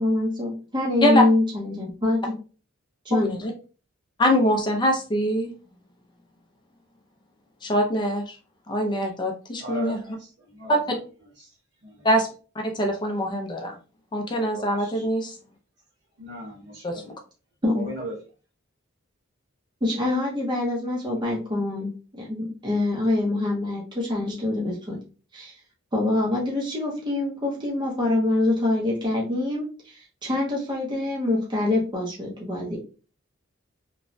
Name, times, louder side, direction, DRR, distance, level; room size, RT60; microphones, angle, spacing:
voice 1, 0.0-2.2 3.0-3.3 17.6-17.9 19.8-21.9 22.2-25.0 25.3-25.5 25.9-32.8, left 2 dB, 25° right, 0.7 m, -25 dB
voice 2, 3.1-3.5 4.2-5.5 7.6-8.4 8.7-10.0 10.7-10.8 12.0-12.3 12.6-13.8 14.1-15.4 16.8-17.1, equal, 20° left, 0.4 m, -23 dB
voice 3, 9.6-11.0 11.4-11.5 11.8-12.1 14.4-15.1 16.2-17.2 17.7-18.2, right 1 dB, 60° right, 1.4 m, -38 dB
3.0 x 2.2 x 2.6 m
head